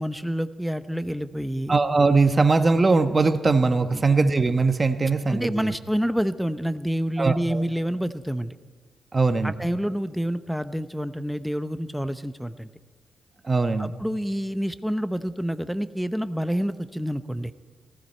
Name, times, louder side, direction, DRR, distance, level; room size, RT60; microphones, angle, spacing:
voice 1, 0.0-1.7 3.9-4.0 5.3-8.5 9.4-12.7 13.8-17.5, equal, ahead, 11 dB, 0.8 m, -28 dB
voice 2, 1.7-5.7 7.2-7.6 9.1-9.5 13.4-13.9, right 3 dB, 35° right, 9 dB, 1.1 m, -21 dB
19.0 x 15.5 x 4.4 m, 1.5 s
cardioid pair, 65°, 0 cm